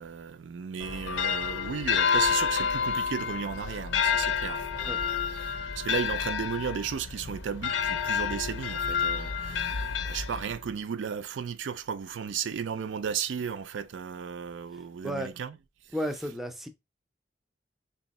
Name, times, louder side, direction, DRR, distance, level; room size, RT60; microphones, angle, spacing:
voice 1, 0.0-15.6, right 7 dB, 90° right, 0.4 m, -35 dB
sound 1, 0.8-10.7, left 6 dB, 85° left, 0.5 m, -29 dB
voice 2, 15.9-16.7, equal, ahead, 0.4 m, -32 dB
3.5 x 2.7 x 4.1 m
head